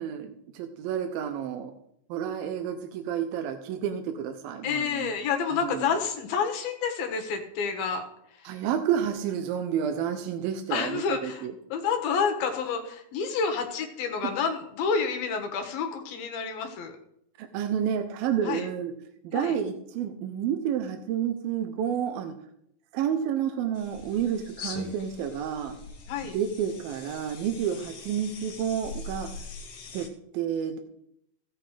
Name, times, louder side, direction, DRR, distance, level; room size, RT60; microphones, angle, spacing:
voice 1, 0.0-1.7 2.1-5.1 5.5-5.9 8.4-11.5 14.2-14.3 17.4-18.9 19.2-22.3 22.9-25.8 26.3-29.3 29.9-30.1 30.3-30.8, right 8 dB, 80° right, 6 dB, 2.7 m, -30 dB
voice 2, 4.6-8.0 8.3-8.5 10.7-17.0 18.4-18.7 19.3-19.5 26.1-26.4, left 6 dB, 80° left, 5 dB, 3.3 m, -29 dB
sound 1, 23.7-30.1, left 4 dB, 55° left, 2.0 m, -42 dB
16.0 x 7.9 x 5.0 m, 0.75 s
omnidirectional pair, 4.3 m